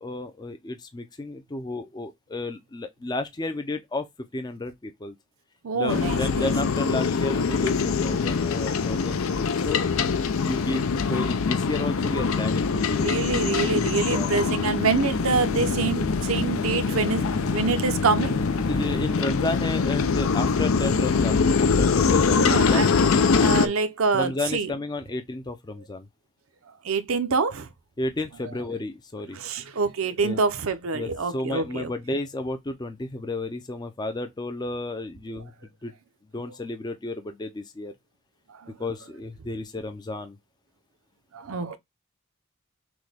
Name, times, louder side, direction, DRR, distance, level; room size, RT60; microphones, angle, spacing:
voice 1, 0.0-4.1 4.3-5.1 5.7-9.8 10.4-13.2 14.0-14.3 18.7-22.9 23.6-23.7 24.1-26.1 28.0-29.4 30.2-30.4 30.9-35.5 35.8-35.9 36.3-37.9 38.8-40.4, left 2 dB, 20° left, 0.5 m, -32 dB
voice 2, 5.6-6.5 13.0-18.7 22.4-24.7 26.8-27.7 28.4-28.5 29.3-31.9 38.6-38.8 41.3-41.8, right 4 dB, 80° right, 0.7 m, -26 dB
sound 1, 5.9-23.7, left 5 dB, 75° left, 0.5 m, -23 dB
Bowed string instrument, 14.3-19.2, right 1 dB, 50° left, 1.5 m, -37 dB
6.0 x 2.2 x 3.3 m
head